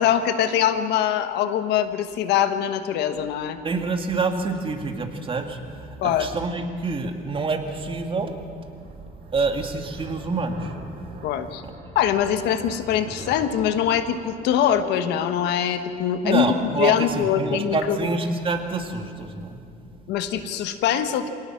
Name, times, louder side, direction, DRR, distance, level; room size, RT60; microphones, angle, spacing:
voice 1, 0.0-3.6 6.0-6.3 11.2-11.6 11.9-18.0 20.1-21.3, left 9 dB, 85° left, 9 dB, 1.4 m, -23 dB
voice 2, 3.6-8.4 9.3-10.7 11.6-11.7 16.2-19.6, right 3 dB, 30° right, 5 dB, 2.2 m, -27 dB
sound 1, 7.8-15.4, right 2 dB, 65° right, 6.9 m, -44 dB
26.5 x 18.0 x 5.9 m, 2.4 s
cardioid pair, 110°, 17 cm